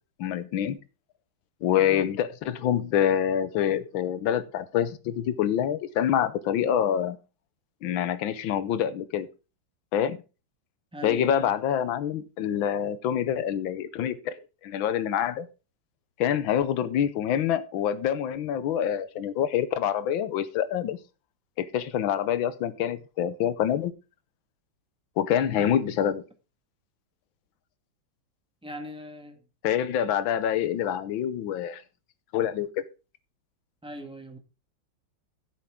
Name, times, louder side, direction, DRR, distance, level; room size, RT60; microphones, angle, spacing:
voice 1, 0.2-0.8 1.6-7.2 7.8-9.3 9.9-10.2 11.0-14.4 14.6-15.5 16.2-21.0 21.6-23.9 25.2-26.2 29.6-31.8 32.3-32.7, left 9 dB, 85° left, 1.6 m, -26 dB
voice 2, 1.8-2.1 10.9-11.5 25.5-25.8 28.6-29.4 33.8-34.4, right 1 dB, 5° right, 1.4 m, -40 dB
14.5 x 8.0 x 3.7 m
omnidirectional pair, 2.1 m